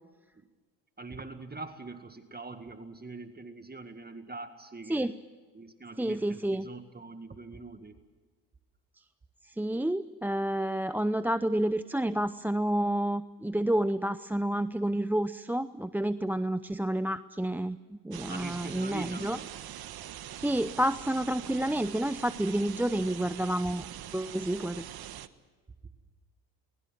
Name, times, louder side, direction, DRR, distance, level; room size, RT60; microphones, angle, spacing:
voice 1, 1.0-5.1 5.5-8.0 18.3-19.5, right 3 dB, 20° right, 8 dB, 1.9 m, -43 dB
voice 2, 6.0-6.7 9.4-19.4 20.4-23.9 24.1-24.9, right 1 dB, 5° right, 14 dB, 0.6 m, -29 dB
sound 1, 18.1-25.3, right 11 dB, 60° right, 1.3 m, -43 dB
23.5 x 21.0 x 7.5 m, 1.4 s
supercardioid pair, 65°, 42 cm